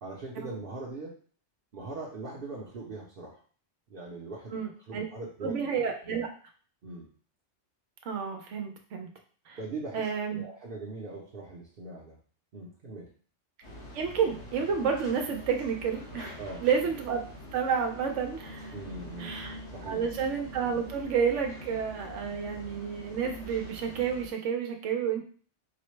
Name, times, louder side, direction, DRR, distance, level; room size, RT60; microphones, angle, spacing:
voice 1, 0.0-1.2 1.7-3.4 3.9-4.6 4.9-5.6 6.8-7.1 9.6-12.2 12.5-13.1 16.4-16.6 18.7-19.4 19.7-20.0, right 3 dB, 55° right, -3 dB, 0.8 m, -40 dB
voice 2, 4.5-5.0 5.4-6.3 8.0-9.1 9.5-9.6 9.9-10.4 13.9-16.3 16.6-17.2 17.5-18.7 19.2-19.6 19.8-25.2, right 6 dB, 90° right, 4 dB, 1.0 m, -30 dB
sound 1, 13.6-24.3, equal, 80° left, 1.7 m, -45 dB
4.9 x 2.1 x 3.1 m, 0.43 s
omnidirectional pair, 1.2 m